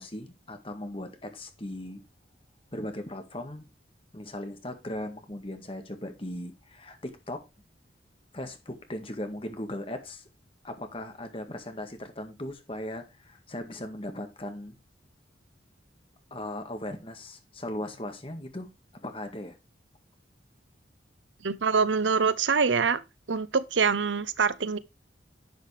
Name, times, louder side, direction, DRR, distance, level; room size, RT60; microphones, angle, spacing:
voice 1, 0.0-2.0 2.7-3.7 4.1-7.4 8.3-10.2 10.6-14.8 16.3-18.7 19.0-19.6, left 1 dB, 30° left, 1.9 m, -38 dB
voice 2, 21.4-23.0 23.3-24.8, right 5 dB, 85° right, 0.8 m, -25 dB
11.0 x 7.5 x 3.4 m
head